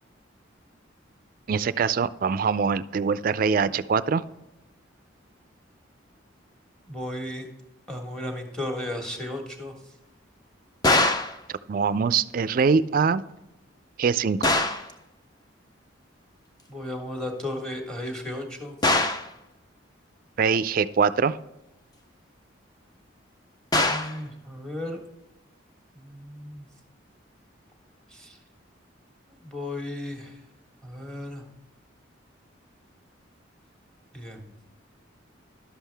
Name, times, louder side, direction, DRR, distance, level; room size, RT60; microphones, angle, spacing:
voice 1, 1.5-4.2 11.7-13.2 14.0-14.5 20.4-21.4, right 5 dB, 45° right, 16 dB, 0.3 m, -23 dB
voice 2, 6.8-7.5 7.9-9.7 16.7-18.8 23.8-25.0 25.9-26.7 28.1-28.4 29.3-30.4 30.8-31.4 34.1-34.5, left 1 dB, 5° left, 3 dB, 1.5 m, -35 dB
sound 1, 10.8-11.4 14.4-14.9 18.8-19.3 23.7-24.2, left 2 dB, 20° left, 0.6 m, -22 dB
11.5 x 7.4 x 3.4 m, 0.94 s
head